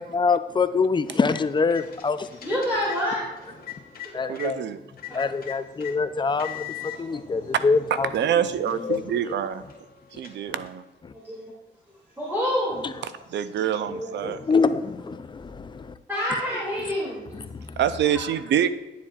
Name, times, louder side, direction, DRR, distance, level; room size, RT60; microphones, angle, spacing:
voice 1, 0.0-2.3 4.1-4.6 5.1-8.1 8.8-9.0 11.0-11.1 12.8-12.9 14.2-15.9 17.4-17.7, left 4 dB, 25° left, 12 dB, 0.4 m, -25 dB
sound 1, 1.1-4.5 5.0-5.9 6.4-7.0 7.6-7.7 8.1-10.9, left 13 dB, 50° left, 1.7 m, -42 dB
voice 2, 2.4-3.6 4.0-4.4 5.1-5.3 6.8-7.1 8.9-9.0 11.2-11.4 12.2-12.8 13.7-14.3 16.1-17.2, equal, 10° right, -7 dB, 2.5 m, -28 dB
voice 3, 4.3-4.8 7.5-7.6 8.1-9.6 10.1-10.8 13.0-14.4 17.8-18.7, right 9 dB, 65° right, 13 dB, 0.5 m, -26 dB
10.0 x 7.2 x 2.4 m, 1.1 s
cardioid pair, 90°, 20 cm